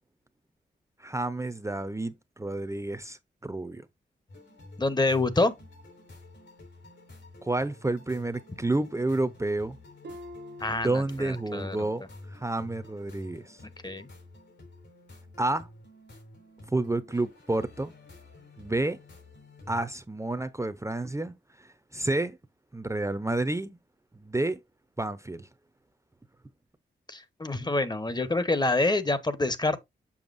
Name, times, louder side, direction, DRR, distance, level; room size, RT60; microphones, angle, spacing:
voice 1, 1.0-3.9 7.4-9.8 10.7-12.0 12.3-13.6 15.4-15.7 16.7-17.9 18.6-19.0 19.7-22.4 22.7-23.8 24.2-24.6 25.0-25.5, right 2 dB, 15° right, 0.7 m, -30 dB
sound 1, 4.3-19.8, left 2 dB, 80° left, 3.9 m, -50 dB
voice 2, 4.8-5.5 10.6-11.8 13.8-14.1 27.1-29.8, left 2 dB, 20° left, 0.9 m, -27 dB
Harp, 10.0-11.8 12.2-12.6 13.1-13.2, left 1 dB, 70° right, 1.2 m, -47 dB
7.2 x 5.7 x 2.5 m
cardioid pair, 60°, 19 cm